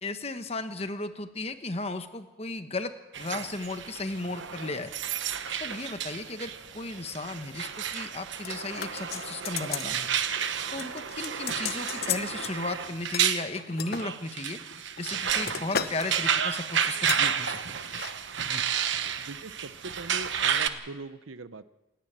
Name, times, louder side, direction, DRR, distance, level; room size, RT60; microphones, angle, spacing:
voice 1, 0.0-4.9 5.6-10.1 10.7-14.6 15.0-17.6 18.5-18.6, left 2 dB, 30° left, 9 dB, 1.2 m, -35 dB
sound 1, 3.1-20.7, right 8 dB, 65° right, 1.1 m, -31 dB
sound 2, 8.4-9.9 10.2-10.5 10.8-12.5 13.1-14.1 14.7-16.1 16.3-16.6 17.1-17.3 17.8-18.1 18.4-18.5, left 7 dB, 50° left, 1.2 m, -35 dB
voice 2, 19.2-21.6, right 3 dB, 85° right, 14 dB, 0.9 m, -41 dB
28.0 x 10.5 x 8.9 m, 1.1 s
head